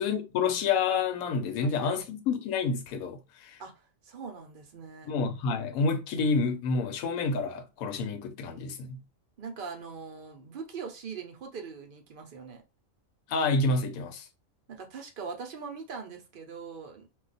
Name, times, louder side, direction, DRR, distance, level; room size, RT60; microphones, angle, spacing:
voice 1, 0.0-3.6 5.0-9.0 13.3-14.3, left 4 dB, 90° left, 1.0 m, -29 dB
voice 2, 1.6-2.0 3.6-5.1 9.4-12.6 14.7-17.1, right 5 dB, 55° right, 0.6 m, -42 dB
2.3 x 2.3 x 3.9 m
omnidirectional pair, 1.4 m